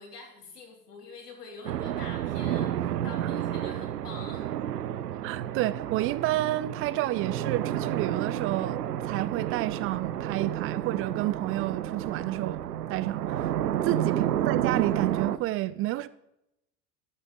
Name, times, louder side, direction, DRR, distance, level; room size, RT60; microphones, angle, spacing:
voice 1, 0.0-4.5 13.9-14.3, left 3 dB, 75° left, 3.5 m, -46 dB
sound 1, 1.6-15.4, right 11 dB, 75° right, 0.7 m, -31 dB
voice 2, 5.2-12.6 12.9-13.5 13.8-16.1, right 15 dB, 30° right, 0.5 m, -30 dB
13.5 x 11.5 x 3.8 m
figure-of-eight pair, 80°, 48 cm